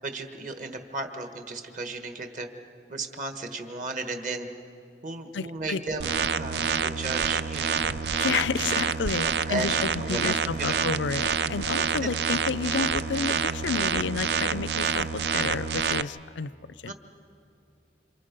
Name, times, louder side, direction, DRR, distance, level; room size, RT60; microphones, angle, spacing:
voice 1, 0.0-2.5 2.9-4.5 5.0-6.1 6.4-8.4 9.2-10.9 12.0-12.1 16.9-17.0, right 2 dB, 45° right, 6 dB, 1.5 m, -35 dB
voice 2, 5.3-5.8 6.6-6.8 8.2-16.5 16.8-16.9, left 5 dB, 90° left, 18 dB, 0.5 m, -31 dB
sound 1, 6.0-16.0, right 6 dB, 65° right, 0.5 m, -27 dB
28.5 x 26.5 x 5.3 m, 2.6 s
head